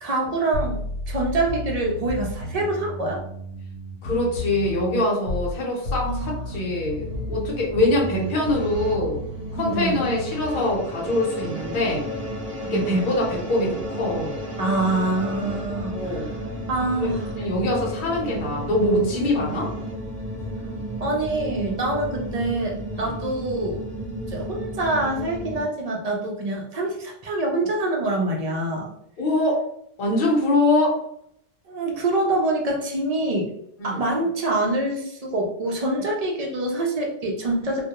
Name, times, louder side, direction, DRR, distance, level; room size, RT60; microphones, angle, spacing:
voice 1, 0.0-3.2 6.0-6.6 9.6-10.0 12.7-13.1 14.6-16.4 16.7-17.3 21.0-23.8 24.3-28.9 31.7-33.5 33.8-37.9, right 2 dB, 50° right, 0 dB, 0.4 m, -25 dB
sound 1, 0.5-5.6 5.8-10.6, left 1 dB, 90° left, 0.9 m, -33 dB
voice 2, 4.0-9.2 9.5-12.0 12.6-14.4 15.9-16.3 17.0-19.7 22.9-23.1 29.2-29.6 30.0-31.0 33.8-34.0, left 1 dB, 50° left, -2 dB, 0.9 m, -24 dB
sound 2, 6.8-25.6, equal, 15° right, 0.8 m, -33 dB
2.2 x 2.1 x 2.8 m, 0.70 s
omnidirectional pair, 1.1 m